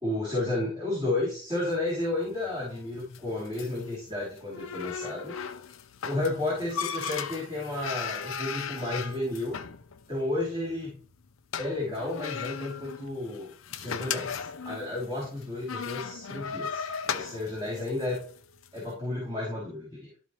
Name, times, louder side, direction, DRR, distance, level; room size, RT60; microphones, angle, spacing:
voice 1, 0.0-5.3 6.0-9.6 10.1-11.0 11.6-18.2 18.7-20.1, left 2 dB, 25° right, -6 dB, 3.0 m, -32 dB
sound 1, 1.6-18.8, left 7 dB, 85° left, 0.6 m, -38 dB
12.5 x 4.2 x 3.1 m, 0.42 s
head